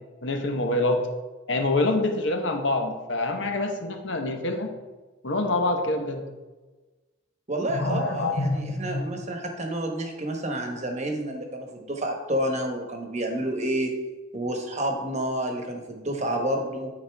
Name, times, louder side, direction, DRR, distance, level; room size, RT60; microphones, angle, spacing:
voice 1, 0.2-1.0 1.5-4.7 5.2-6.2 7.7-9.0, left 2 dB, 65° left, 4 dB, 1.0 m, -26 dB
voice 2, 7.5-14.0 14.3-16.9, right 1 dB, 35° right, 3 dB, 1.1 m, -29 dB
12.5 x 4.3 x 3.4 m, 1.2 s
head